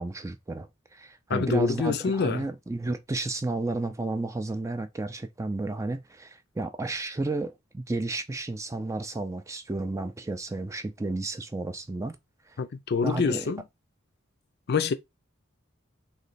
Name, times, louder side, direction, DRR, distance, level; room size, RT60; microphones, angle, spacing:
voice 1, 0.0-12.2 12.5-12.6 13.0-13.5, right 2 dB, 15° right, 0.4 m, -32 dB
voice 2, 1.3-2.4 12.6-13.6 14.7-14.9, left 5 dB, 50° left, 0.4 m, -26 dB
3.1 x 3.0 x 4.0 m
head